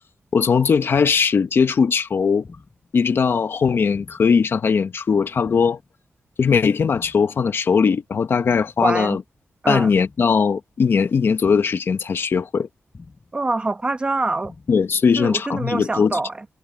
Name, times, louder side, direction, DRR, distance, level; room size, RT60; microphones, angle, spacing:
voice 1, 0.3-2.4 2.9-5.8 6.4-9.2 9.7-12.7 14.7-16.2, left 6 dB, 55° left, 1.0 m, -19 dB
sound 1, 0.9-1.4 2.4-2.9 3.9-4.4 5.4-5.9 6.9-7.4 8.4-8.9 9.9-10.4 11.4-11.9 12.9-13.4 14.4-14.9, left 4 dB, 30° left, 5.3 m, -46 dB
voice 2, 8.8-9.2 9.6-9.9 13.3-14.5 15.2-16.4, right 2 dB, 20° right, 0.9 m, -24 dB
wide cardioid pair, 165°, 5 cm